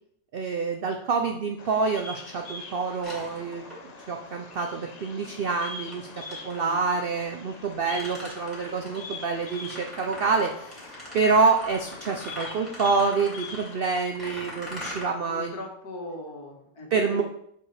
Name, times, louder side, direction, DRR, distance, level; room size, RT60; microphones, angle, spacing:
voice 1, 0.3-15.5 16.9-17.2, right 4 dB, 90° right, 4 dB, 0.5 m, -27 dB
Bird vocalization bird call bird song, 1.6-13.7, left 3 dB, 40° left, 0.6 m, -43 dB
sound 1, 3.0-4.1 5.9-6.8 7.5-15.0, equal, ahead, 2.5 m, -41 dB
voice 2, 15.1-17.2, left 1 dB, 70° left, 0 dB, 2.0 m, -39 dB
6.9 x 5.4 x 3.3 m, 0.72 s
omnidirectional pair, 1.7 m